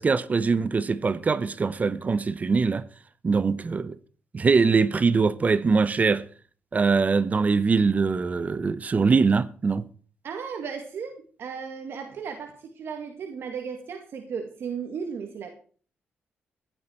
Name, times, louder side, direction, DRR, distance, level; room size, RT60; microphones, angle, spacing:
voice 1, 0.0-2.9 3.2-4.0 4.3-6.2 6.7-9.8, right 4 dB, 40° right, 0.9 m, -22 dB
voice 2, 10.2-15.5, right 6 dB, 70° right, 2.1 m, -35 dB
15.0 x 12.0 x 4.5 m
cardioid pair, 85°, 4 cm